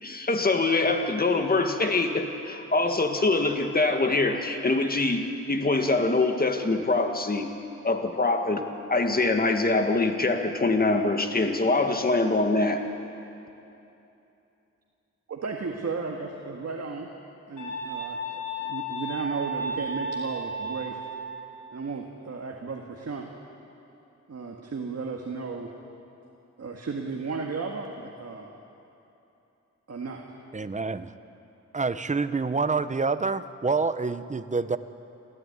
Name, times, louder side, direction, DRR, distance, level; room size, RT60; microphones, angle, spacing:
voice 1, 0.0-7.5 7.8-12.8, left 3 dB, 30° left, 5 dB, 1.9 m, -24 dB
voice 2, 15.3-17.1 17.5-21.0 21.7-23.3 24.3-25.7 26.6-28.5 29.9-30.3, right 4 dB, 60° right, 1 dB, 1.8 m, -34 dB
sound 1, 17.6-21.2, right 1 dB, 85° left, 4.8 m, -33 dB
voice 3, 30.5-31.1 31.7-34.8, right 4 dB, 25° right, 12 dB, 0.8 m, -27 dB
26.0 x 14.5 x 9.5 m, 2.9 s
wide cardioid pair, 95°, 29 cm